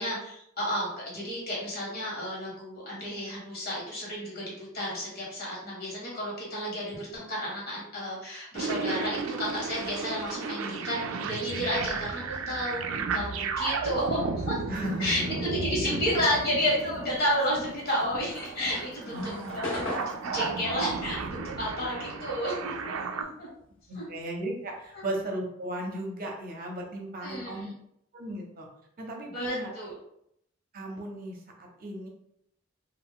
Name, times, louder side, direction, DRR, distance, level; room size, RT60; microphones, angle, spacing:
voice 1, 0.0-14.6 15.0-23.5 23.9-24.1 24.9-25.0 27.2-27.7 29.3-29.9, equal, 50° left, -4 dB, 1.3 m, -32 dB
sound 1, 8.5-23.2, right 4 dB, 90° right, 0.3 m, -34 dB
voice 2, 14.7-15.4 15.9-16.0 19.1-19.6 23.9-27.7 28.1-28.7 29.0-29.7 30.7-32.1, right 1 dB, 45° right, 0 dB, 0.7 m, -36 dB
sound 2, 15.7-20.6, left 2 dB, 35° left, 0.4 m, -44 dB
sound 3, 18.2-22.9 23.2-25.2, left 2 dB, 85° left, 0.8 m, -39 dB
2.4 x 2.3 x 3.6 m, 0.74 s
head